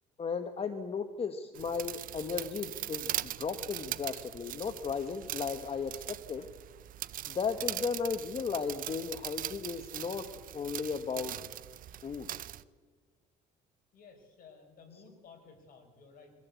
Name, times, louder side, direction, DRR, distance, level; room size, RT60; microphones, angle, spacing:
voice 1, 0.2-6.5 7.3-10.3 10.5-11.4 12.0-12.3, left 5 dB, 35° left, 8 dB, 1.2 m, -35 dB
sound 1, 1.5-12.6, right 12 dB, 55° right, 0.6 m, -40 dB
voice 2, 13.9-16.3, left 5 dB, 55° left, 4 dB, 4.6 m, -55 dB
22.5 x 15.0 x 8.2 m, 1.5 s
cardioid pair, 110°, 17 cm